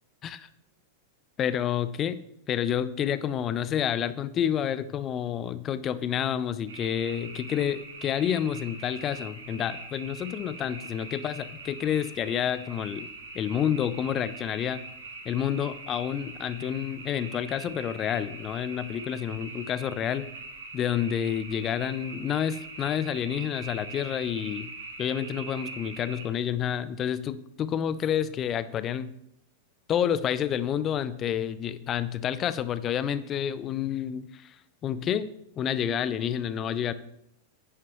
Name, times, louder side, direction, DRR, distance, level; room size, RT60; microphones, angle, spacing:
voice 1, 1.4-2.2 2.5-13.1 13.3-14.8 15.2-20.3 20.7-24.7 25.0-29.1 29.9-34.5 34.8-35.3 35.6-36.9, left 9 dB, 30° left, 15 dB, 0.5 m, -29 dB
sound 1, 6.7-26.2, right 3 dB, 65° right, 2.1 m, -42 dB
10.5 x 9.1 x 3.0 m, 0.75 s
figure-of-eight pair, 95°, 0 cm